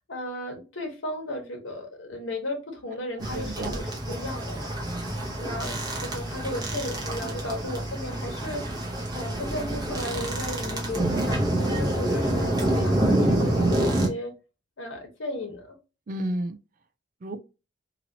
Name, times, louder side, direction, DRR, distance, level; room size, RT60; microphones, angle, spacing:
voice 1, 0.1-4.8 5.4-8.9 9.1-14.3 14.8-15.8, left 1 dB, 85° left, 1.2 m, -35 dB
sound 1, 3.2-14.1, right 1 dB, 20° right, 0.8 m, -27 dB
voice 2, 3.3-3.7 4.8-5.2 16.1-16.6 17.2-17.4, right 1 dB, 45° right, 0.4 m, -32 dB
2.9 x 2.7 x 2.8 m
head